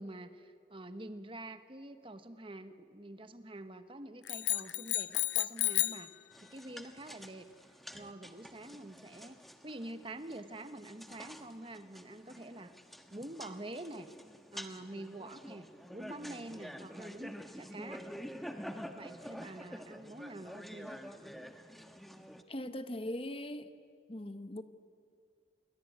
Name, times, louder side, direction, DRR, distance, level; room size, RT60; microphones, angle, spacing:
voice 1, 0.0-6.1 6.4-7.5 7.9-12.7 13.1-14.1 14.5-18.1 18.9-21.0, right 1 dB, 30° right, 10 dB, 1.1 m, -47 dB
sound 1, 4.3-6.1, left 17 dB, 85° left, 0.7 m, -32 dB
sound 2, 6.3-22.4, equal, ahead, 1.2 m, -48 dB
voice 2, 22.5-23.7 24.1-24.6, left 1 dB, 30° left, 10 dB, 1.0 m, -40 dB
29.0 x 22.5 x 9.3 m, 2.3 s
head